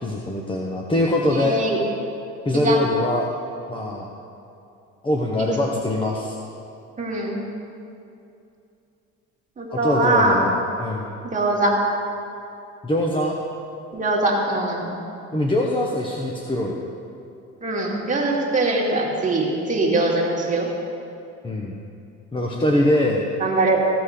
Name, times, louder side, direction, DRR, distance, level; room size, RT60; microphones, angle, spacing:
voice 1, 0.0-1.6 2.4-3.3 3.7-4.1 5.0-6.4 9.7-11.1 12.8-13.4 15.3-16.8 21.4-21.7 22.3-23.3, left 1 dB, 15° left, -1 dB, 0.9 m, -23 dB
voice 2, 1.3-1.8 2.5-2.8 5.4-5.5 7.0-7.4 9.6-10.4 11.2-11.7 13.9-14.9 17.6-20.7 23.4-23.8, right 2 dB, 25° right, -3 dB, 2.2 m, -22 dB
15.5 x 5.4 x 6.5 m, 2.6 s
cardioid pair, 125°, 32 cm